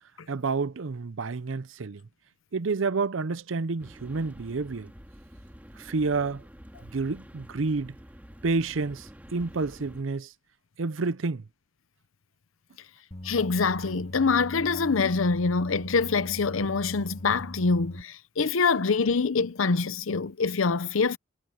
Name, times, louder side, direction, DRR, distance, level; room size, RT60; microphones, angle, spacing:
voice 1, 0.3-2.0 2.5-4.9 5.8-6.4 6.8-7.9 8.4-10.3 10.8-11.4, right 4 dB, 75° right, 0.7 m, -29 dB
sound 1, 3.8-10.0, equal, 10° right, 2.1 m, -48 dB
sound 2, 13.1-18.0, left 1 dB, 30° left, 1.8 m, -40 dB
voice 2, 13.2-21.2, left 4 dB, 85° left, 0.7 m, -25 dB
head